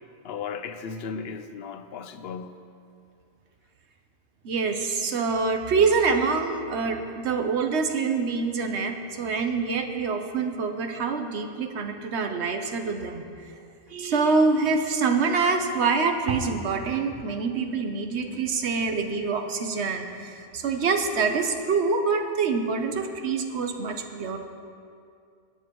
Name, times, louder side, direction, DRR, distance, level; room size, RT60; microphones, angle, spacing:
voice 1, 0.2-2.6, left 6 dB, 70° left, 10 dB, 0.8 m, -36 dB
voice 2, 4.4-13.2 13.9-24.4, right 4 dB, 85° right, 5 dB, 1.1 m, -25 dB
17.5 x 9.1 x 3.0 m, 2.3 s
omnidirectional pair, 1.1 m